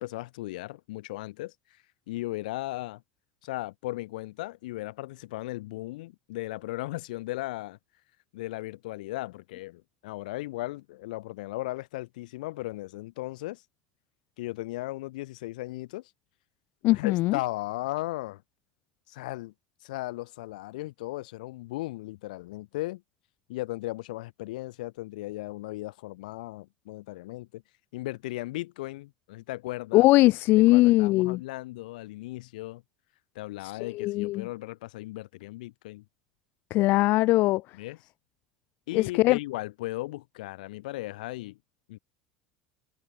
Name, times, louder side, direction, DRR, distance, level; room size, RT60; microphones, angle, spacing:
voice 1, 0.0-1.5 2.1-3.0 3.4-7.8 8.3-13.6 14.4-16.0 16.9-18.4 19.1-19.5 19.8-23.0 23.5-27.6 27.9-30.1 30.6-32.8 33.3-36.0 37.7-38.0 38.9-41.6 41.9-42.0, left 18 dB, 70° left, 2.5 m, -36 dB
voice 2, 16.8-17.4 29.9-31.4 33.8-34.5 36.7-37.6 38.9-39.4, left 19 dB, 50° left, 0.4 m, -21 dB
hypercardioid pair, 80°, 5 cm